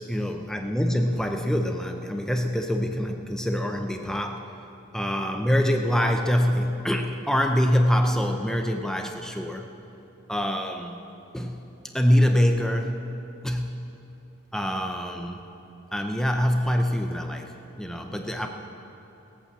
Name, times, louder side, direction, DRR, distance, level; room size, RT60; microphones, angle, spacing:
voice 1, 0.0-4.6 4.9-9.7 10.3-11.0 11.3-11.6 11.9-13.2 13.4-13.9 14.5-15.4 15.9-18.5, equal, 5° left, 4 dB, 0.6 m, -25 dB
17.5 x 8.4 x 7.4 m, 2.9 s
head